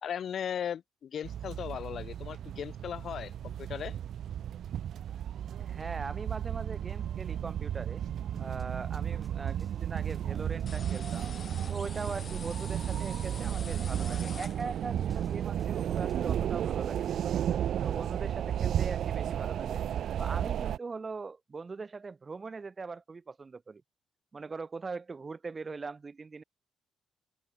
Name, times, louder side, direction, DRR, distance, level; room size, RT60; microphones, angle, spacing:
voice 1, 0.0-3.9, left 8 dB, 55° left, 0.4 m, -37 dB
sound 1, 1.2-20.8, right 10 dB, 65° right, 0.5 m, -33 dB
voice 2, 5.6-8.0 8.4-11.3 11.7-17.2 17.8-19.8 20.2-23.8 24.3-26.4, right 4 dB, 30° right, 1.5 m, -41 dB
sound 2, 8.3-8.6 9.0-9.7 10.0-10.6 11.0-11.7 12.0-12.6 13.0-13.7 14.0-14.6 15.0-16.3, right 1 dB, 5° right, 1.1 m, -51 dB
sound 3, 10.7-15.0, left 6 dB, 40° left, 4.3 m, -47 dB
open air
cardioid pair, 110°, 0 cm